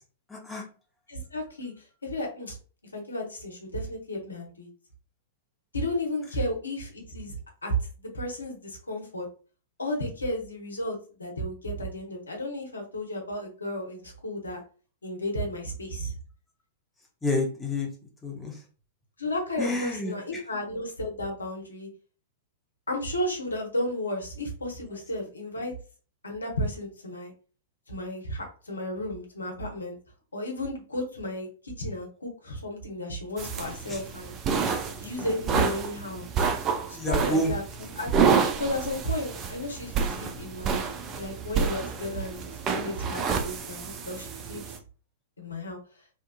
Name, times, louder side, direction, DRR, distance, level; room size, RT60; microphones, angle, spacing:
voice 1, 0.3-0.7 17.2-17.9 18.2-18.6 19.6-20.4 24.9-25.0 33.9-34.0 36.9-37.5, left 1 dB, 10° left, -1 dB, 0.7 m, -29 dB
voice 2, 1.1-2.6 2.9-4.7 5.7-7.4 7.6-7.7 8.0-9.3 9.8-14.6 15.0-16.1 19.2-21.9 22.9-25.8 26.2-27.3 27.9-30.0 30.3-34.3 35.0-36.2 36.9-37.6 38.0-38.1 38.6-40.8 41.1-44.6 45.4-45.8, left 1 dB, 80° left, 1 dB, 0.8 m, -33 dB
sound 1, 33.4-44.8, right 6 dB, 30° right, 0.4 m, -29 dB
2.8 x 2.4 x 2.2 m, 0.38 s
figure-of-eight pair, 100°, 0 cm